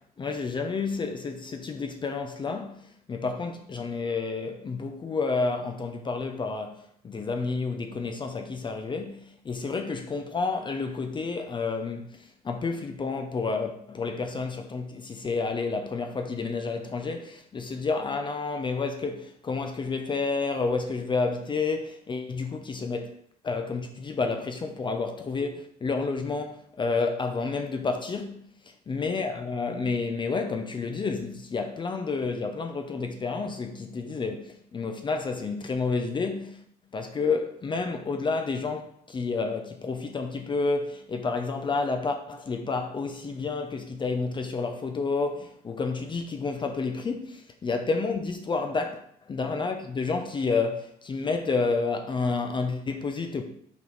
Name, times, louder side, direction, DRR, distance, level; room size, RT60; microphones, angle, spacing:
voice 1, 0.0-23.2 23.4-28.4 28.9-36.6 36.9-49.0 49.3-53.4, left 4 dB, 30° left, 0.6 m, -30 dB
5.3 x 4.6 x 3.9 m
cardioid pair, 110°, 17 cm